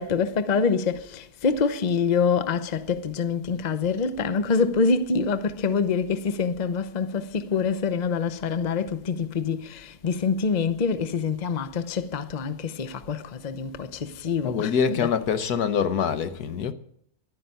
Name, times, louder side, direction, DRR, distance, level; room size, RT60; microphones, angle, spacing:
voice 1, 0.0-15.1, left 5 dB, 35° left, 0.7 m, -26 dB
voice 2, 14.4-16.7, left 7 dB, 80° left, 1.6 m, -25 dB
11.5 x 9.7 x 9.1 m
omnidirectional pair, 1.6 m